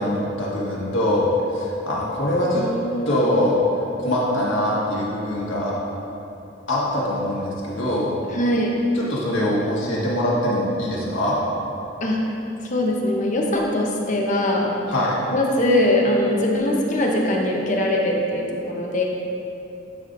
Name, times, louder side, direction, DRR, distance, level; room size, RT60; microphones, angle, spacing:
voice 1, 0.0-2.6 3.0-5.8 6.7-8.1 8.9-11.4 14.9-15.2, left 1 dB, 90° left, -6 dB, 1.6 m, -23 dB
voice 2, 2.5-3.1 8.3-8.8 12.0-12.2 12.6-14.7 15.3-19.0, left 1 dB, 40° left, -1 dB, 0.8 m, -22 dB
11.0 x 4.9 x 2.6 m, 2.8 s
head